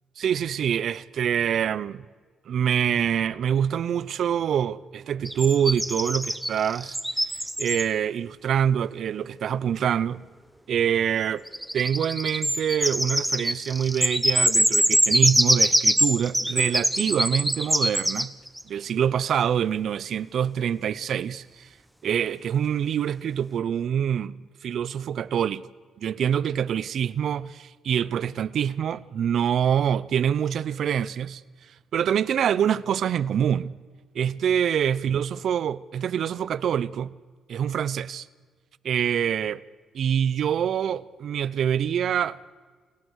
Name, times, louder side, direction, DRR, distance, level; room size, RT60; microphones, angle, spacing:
voice 1, 0.2-2.0 2.5-7.0 7.6-10.2 10.7-11.4 11.7-18.3 18.7-21.7 22.0-24.3 24.6-25.6 26.0-31.4 31.9-33.7 34.1-37.1 37.5-38.3 38.8-39.6 39.9-42.4, right 8 dB, 60° right, 0.7 m, -25 dB
sound 1, 5.3-7.9 11.5-18.6, equal, 5° right, 0.9 m, -24 dB
29.0 x 18.0 x 6.5 m
cardioid pair, 125°, 0 cm